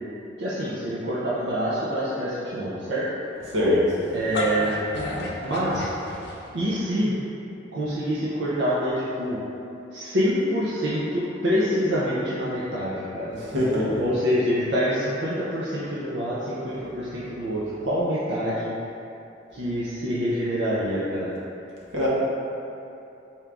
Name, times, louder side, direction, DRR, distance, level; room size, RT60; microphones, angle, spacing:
voice 1, 0.4-3.0 4.1-4.8 5.4-5.9 6.5-7.2 7.7-9.4 9.9-13.3 14.0-18.7 19.5-21.3, equal, 70° right, -9 dB, 0.6 m, -26 dB
voice 2, 3.5-3.9 13.3-14.0 21.9-22.1, left 1 dB, 85° right, -7 dB, 1.0 m, -22 dB
sound 1, 4.1-6.7, left 1 dB, 60° left, 0.5 m, -32 dB
4.3 x 2.5 x 3.4 m, 2.8 s
head